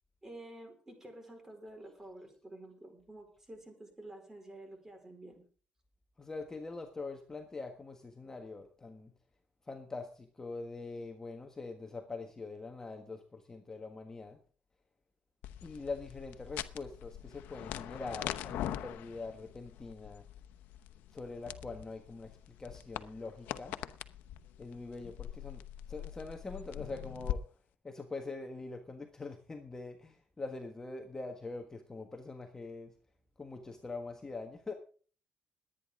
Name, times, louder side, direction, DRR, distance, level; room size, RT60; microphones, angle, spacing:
voice 1, 0.2-5.4, right 1 dB, 15° right, 4 dB, 4.7 m, -50 dB
voice 2, 6.2-9.1 9.7-14.4 15.6-20.3 21.1-22.3 22.6-23.8 24.6-25.6 25.9-27.4 27.8-32.9 33.4-34.7, left 3 dB, 15° left, 3 dB, 1.5 m, -43 dB
sound 1, 15.4-27.4, left 12 dB, 90° left, 0.9 m, -43 dB
21.5 x 9.5 x 3.7 m, 0.41 s
cardioid pair, 135°, 3 cm